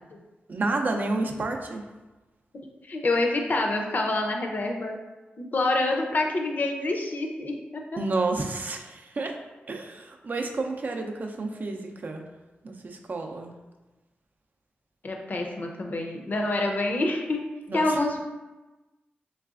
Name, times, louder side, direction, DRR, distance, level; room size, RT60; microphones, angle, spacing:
voice 1, 0.5-1.8 8.0-9.3 9.7-12.2 12.6-13.5 17.7-18.0, right 3 dB, 50° right, 3 dB, 0.4 m, -30 dB
voice 2, 2.8-5.0 5.4-8.0 15.0-17.4 17.7-18.2, left 2 dB, 50° left, 2 dB, 0.5 m, -27 dB
3.9 x 3.2 x 2.4 m, 1.2 s
wide cardioid pair, 85°, 4 cm